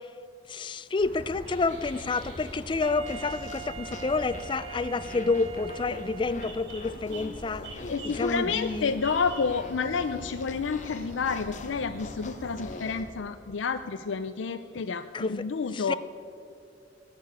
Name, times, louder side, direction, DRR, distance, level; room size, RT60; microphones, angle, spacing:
voice 1, 0.5-8.9 15.1-15.5 15.7-15.9, left 3 dB, 25° left, 15 dB, 0.4 m, -29 dB
sound 1, 1.0-13.0, equal, 70° right, 3.4 m, -43 dB
sound 2, 2.1-4.6 5.0-13.0, left 3 dB, 40° left, 0.9 m, -46 dB
Wind instrument woodwind instrument, 2.8-6.7, right 7 dB, 35° right, 0.6 m, -43 dB
voice 2, 7.9-15.9, left 5 dB, 85° left, 9 dB, 0.5 m, -30 dB
17.0 x 6.9 x 9.1 m, 2.5 s
head